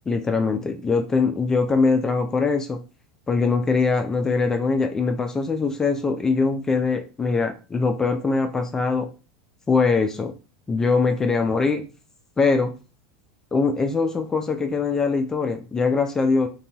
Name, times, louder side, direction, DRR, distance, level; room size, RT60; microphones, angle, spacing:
voice 1, 0.0-2.8 3.3-9.1 9.7-10.3 10.7-11.9 12.4-12.7 13.5-16.5, left 4 dB, 15° left, 6 dB, 0.3 m, -22 dB
2.5 x 2.2 x 2.8 m, 0.34 s
hypercardioid pair, 90°, 3 cm